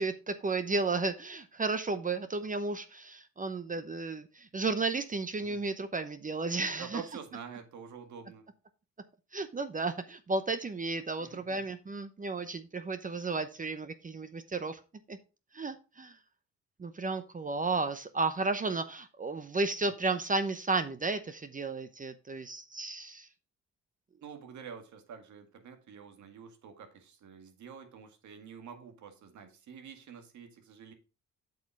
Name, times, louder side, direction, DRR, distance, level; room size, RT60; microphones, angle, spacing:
voice 1, 0.0-7.0 9.3-14.8 15.1-15.2 15.5-16.1 16.8-23.3, right 3 dB, 25° right, 10 dB, 0.8 m, -33 dB
voice 2, 6.8-8.4 11.2-11.7 24.2-30.9, right 7 dB, 70° right, 5 dB, 2.0 m, -47 dB
8.0 x 5.5 x 4.6 m, 0.32 s
cardioid pair, 90°, 30 cm